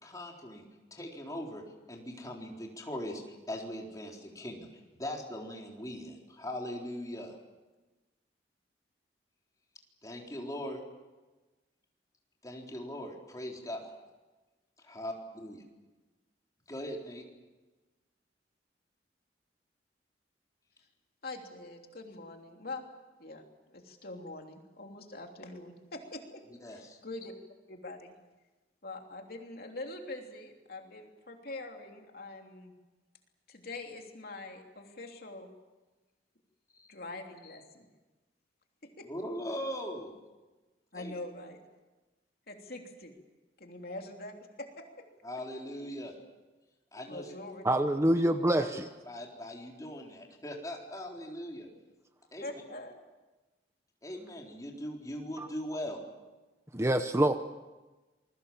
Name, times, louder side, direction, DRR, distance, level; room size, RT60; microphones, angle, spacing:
voice 1, 0.0-0.7 0.9-1.6 1.9-3.2 3.5-7.4 10.0-10.8 12.4-13.9 14.9-15.6 16.7-17.2 26.6-27.0 36.7-36.9 39.1-40.1 40.9-41.1 45.2-46.1 46.9-47.3 48.6-48.7 49.0-51.7 52.3-52.5 54.0-56.0, equal, 20° left, 4.1 m, -40 dB
voice 2, 21.2-22.8 23.2-23.4 23.7-26.4 26.7-27.3 27.7-28.1 28.8-32.7 33.5-35.5 36.9-37.9 38.8-39.1 40.9-41.6 42.5-43.1 43.6-44.8 47.1-47.6 52.4-53.0, left 2 dB, 55° left, 3.1 m, -44 dB
voice 3, 47.6-48.9 55.4-55.5 56.7-57.4, right 1 dB, 15° right, 0.9 m, -26 dB
27.5 x 21.5 x 7.4 m
head